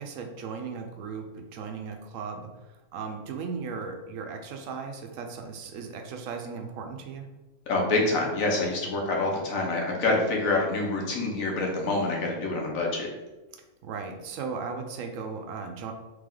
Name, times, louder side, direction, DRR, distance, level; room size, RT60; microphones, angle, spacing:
voice 1, 0.0-2.5 2.9-7.3 9.0-9.1 13.5-15.9, right 5 dB, 75° right, 5 dB, 1.0 m, -37 dB
voice 2, 7.7-13.1, left 2 dB, 80° left, -1 dB, 1.3 m, -26 dB
3.4 x 3.4 x 3.6 m, 1.1 s
omnidirectional pair, 1.4 m